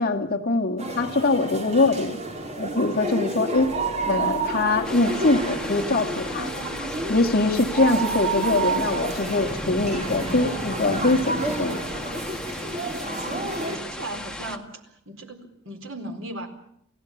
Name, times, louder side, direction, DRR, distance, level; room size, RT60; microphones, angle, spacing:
voice 1, 0.0-2.2 2.6-3.7 4.1-6.5 7.1-11.8, left 2 dB, 50° left, 5 dB, 2.0 m, -23 dB
sound 1, 0.8-13.8, right 1 dB, 35° right, 4.1 m, -32 dB
sound 2, 3.7-5.2 5.5-5.6 6.1-10.5 11.0-11.1 11.9-12.0 12.2-12.3, right 7 dB, 90° right, 7.2 m, -29 dB
sound 3, 4.8-14.6, left 1 dB, 5° left, 1.7 m, -35 dB
voice 2, 13.2-16.5, right 2 dB, 70° right, 5 dB, 4.3 m, -37 dB
29.0 x 16.5 x 7.2 m, 0.73 s
head